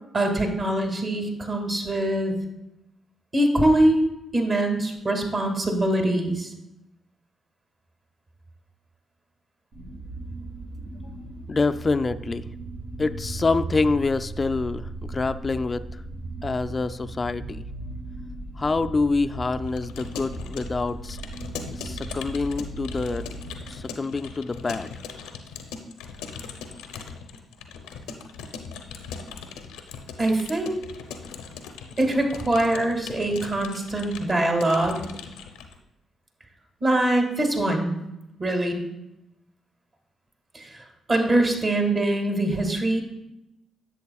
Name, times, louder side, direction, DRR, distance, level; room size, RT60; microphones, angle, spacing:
voice 1, 0.1-2.3 3.3-4.1 4.3-6.5 30.2-30.8 32.0-35.1 36.8-37.9 38.4-38.8 40.5-43.0, right 1 dB, 40° right, 2 dB, 2.1 m, -23 dB
sound 1, 9.7-23.8, right 2 dB, 75° right, 1.5 m, -37 dB
voice 2, 11.5-12.5 13.0-15.9 16.4-17.6 18.6-21.2 21.8-23.3 23.7-24.9, left 3 dB, 35° left, 12 dB, 0.3 m, -26 dB
Keyboard (musical) / Computer keyboard, 19.7-35.8, left 5 dB, 90° left, 0.6 m, -40 dB
10.5 x 7.7 x 2.3 m, 0.88 s
supercardioid pair, 55°, 0 cm